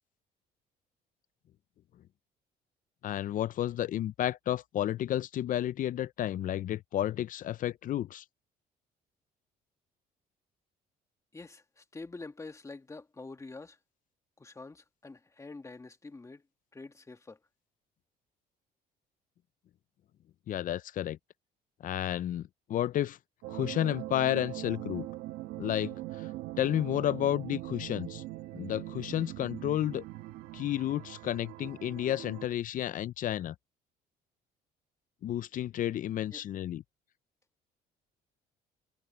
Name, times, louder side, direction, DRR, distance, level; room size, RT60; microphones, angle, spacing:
voice 1, 3.0-8.2 20.5-21.2 21.8-23.2 23.5-25.1 25.6-26.3 26.6-28.2 28.5-30.0 30.5-33.5 35.2-36.8, left 12 dB, 50° left, 0.6 m, -31 dB
voice 2, 11.3-13.8 14.4-16.4 16.7-17.4 36.3-36.4, left 3 dB, 20° left, 2.2 m, -46 dB
sound 1, 23.4-32.5, right 17 dB, 90° right, 1.8 m, -41 dB
cardioid pair, 110°, 17 cm